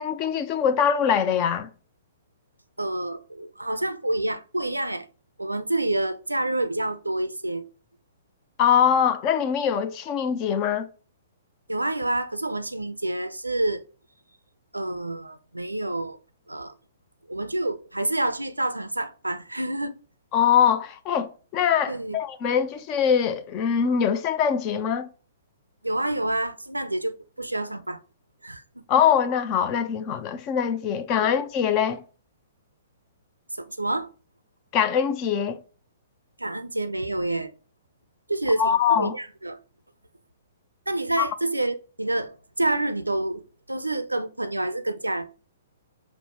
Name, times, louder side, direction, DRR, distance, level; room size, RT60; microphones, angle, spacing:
voice 1, 0.0-1.7 8.6-10.9 20.3-25.1 28.9-32.0 34.7-35.6 38.6-39.1 41.2-41.3, left 8 dB, 30° left, 0.4 m, -23 dB
voice 2, 2.8-5.1 5.4-7.6 11.7-13.8 14.7-16.2 16.5-16.7 17.3-20.0 21.9-22.2 25.8-28.0 28.4-28.8 31.2-31.3 33.6-34.1 36.4-37.5 38.3-39.6 40.9-45.3, right 1 dB, 80° right, 0.4 m, -28 dB
5.2 x 2.0 x 4.3 m
figure-of-eight pair, 115°, 0 cm